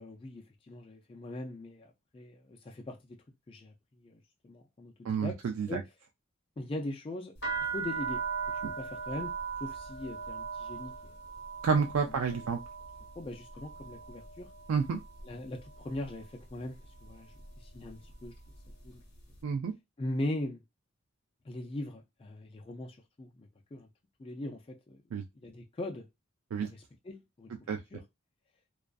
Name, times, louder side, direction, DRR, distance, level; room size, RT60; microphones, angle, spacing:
voice 1, 0.0-3.0 3.5-4.9 5.2-5.4 5.7-5.9 6.6-7.3 7.7-8.2 8.8-9.4 9.6-11.2 12.0-12.4 13.2-14.5 15.2-17.3 17.7-18.3 18.8-19.0 20.0-20.6 21.5-23.9 24.2-25.0 25.4-26.1 26.6-28.0, left 1 dB, 25° left, 0.3 m, -40 dB
voice 2, 5.0-5.8 8.6-8.7 11.6-12.6 14.7-15.0 19.4-19.7 25.1-25.2 26.5-26.7 27.7-27.8, right 5 dB, 80° right, 0.3 m, -29 dB
sound 1, 7.4-15.3 15.6-16.2 16.8-17.1 17.4-18.9, right 6 dB, 55° left, 0.9 m, -39 dB
2.4 x 2.4 x 2.2 m
head